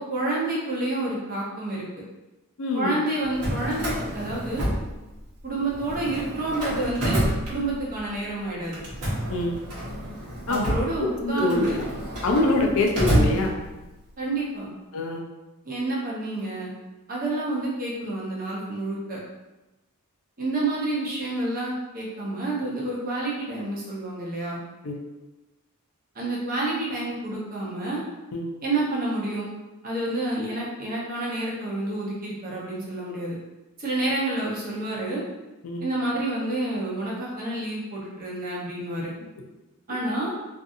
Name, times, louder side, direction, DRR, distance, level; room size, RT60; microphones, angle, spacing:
voice 1, 0.0-1.9 2.7-4.6 5.4-8.8 10.5-11.8 14.2-14.7 15.6-16.7 17.1-19.2 20.4-24.6 26.1-28.0 28.6-29.5 29.8-33.3 33.8-35.2 35.8-39.1 39.9-40.3, right 2 dB, 40° right, -5 dB, 0.8 m, -29 dB
voice 2, 2.6-2.9 9.3-9.6 10.5-10.8 11.2-11.7 12.2-13.5 14.9-15.2 24.8-25.0 28.3-28.6 35.6-35.8, left 2 dB, 65° left, 1 dB, 0.5 m, -24 dB
Drawer open or close, 3.2-5.4 5.7-8.1 8.7-14.0, equal, 85° right, 0.9 m, -29 dB
2.6 x 2.4 x 2.5 m, 1.1 s
head